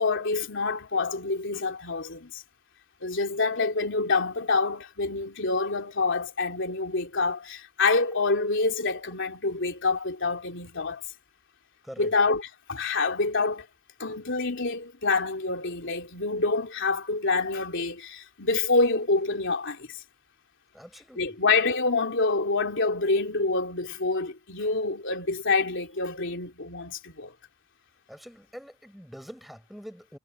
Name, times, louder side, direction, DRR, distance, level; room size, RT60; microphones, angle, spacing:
voice 1, 0.0-2.4 3.0-11.0 12.0-13.7 14.0-20.0 21.2-27.3, left 3 dB, 65° left, 3.4 m, -27 dB
voice 2, 20.7-21.2 28.1-30.2, equal, ahead, 4.6 m, -44 dB
head